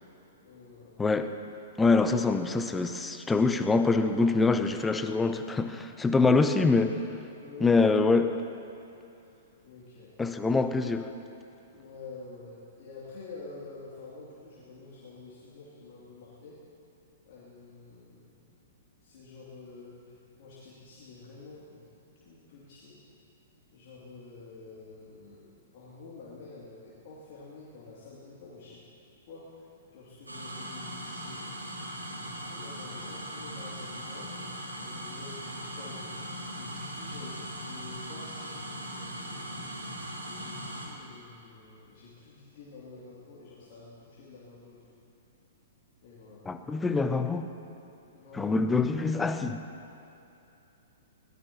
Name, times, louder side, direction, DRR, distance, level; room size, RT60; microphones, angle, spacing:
voice 1, 0.4-0.9 7.4-7.8 9.2-9.3 9.6-10.1 11.7-16.6 17.3-18.3 19.0-20.1 20.4-21.9 22.3-23.0 23.7-28.8 29.3-31.6 32.1-34.3 34.8-36.2 36.6-39.6 40.2-44.8 46.0-46.4 48.1-48.5, left 3 dB, 40° left, -7 dB, 2.8 m, -48 dB
voice 2, 1.0-1.3 1.8-7.0 7.6-8.4 10.2-11.1 46.5-47.5 48.3-49.6, left 3 dB, 10° left, 9 dB, 0.7 m, -25 dB
sound 1, 30.3-40.9, equal, 80° right, 2.8 m, -39 dB
22.5 x 17.5 x 3.0 m, 2.7 s
figure-of-eight pair, 110°, 0 cm